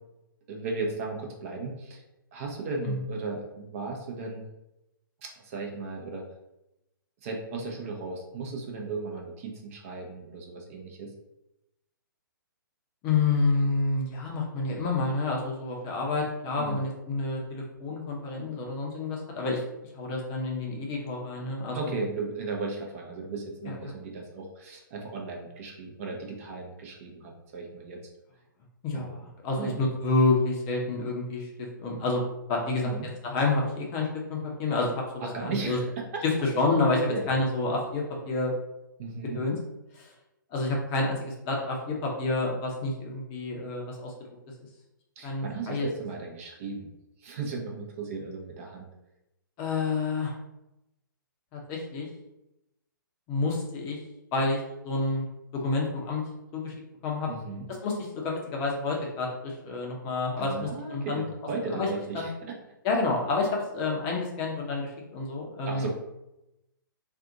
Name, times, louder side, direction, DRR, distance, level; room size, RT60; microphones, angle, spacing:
voice 1, 0.5-2.0 2.3-4.4 5.2-6.2 7.2-11.1 16.6-16.8 21.7-28.0 28.9-29.2 29.6-30.0 32.7-33.1 35.2-36.2 37.1-37.3 39.0-39.4 45.2-46.9 47.2-48.9 57.3-57.6 60.4-62.3 65.7-65.9, right 3 dB, 40° right, 0 dB, 0.7 m, -36 dB
voice 2, 13.0-19.6 19.9-21.9 23.7-23.8 28.8-32.2 32.5-32.9 33.2-35.8 36.2-38.5 39.3-39.6 39.9-40.1 40.5-44.1 45.2-45.9 49.6-50.3 51.5-52.1 53.3-54.0 54.3-55.2 55.5-56.2 56.5-56.7 57.0-57.3 57.7-61.2 61.7-61.9 62.1-62.3 62.8-65.9, left 3 dB, 25° left, -1 dB, 0.7 m, -29 dB
2.6 x 2.4 x 3.7 m, 0.90 s
figure-of-eight pair, 130°, 11 cm